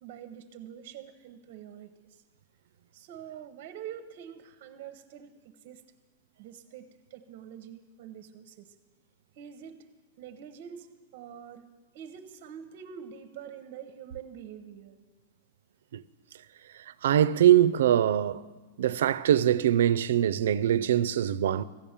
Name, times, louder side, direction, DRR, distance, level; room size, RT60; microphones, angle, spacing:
voice 1, 0.0-2.2 2.9-5.3 5.6-5.8 6.4-8.7 9.4-9.9 10.2-10.9 11.1-11.7 11.9-14.9, right 9 dB, 45° right, 0.7 m, -45 dB
voice 2, 17.0-18.4 18.8-21.6, right 11 dB, 80° right, 0.4 m, -23 dB
14.5 x 7.0 x 8.7 m
supercardioid pair, 165°, 0 cm